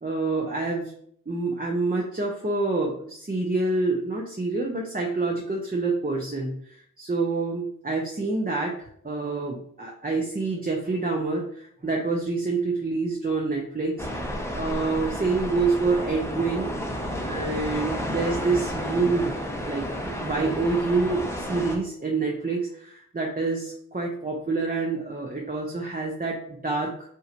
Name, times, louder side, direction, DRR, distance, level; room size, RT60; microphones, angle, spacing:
voice 1, 0.0-0.9 1.3-8.8 9.0-14.1 14.5-16.7 17.2-19.3 19.7-19.9 20.2-26.9, right 3 dB, 25° right, -1 dB, 0.8 m, -27 dB
sound 1, 14.0-21.8, equal, 10° left, 0.8 m, -31 dB
5.6 x 3.2 x 2.6 m, 0.64 s
wide cardioid pair, 50°, 34 cm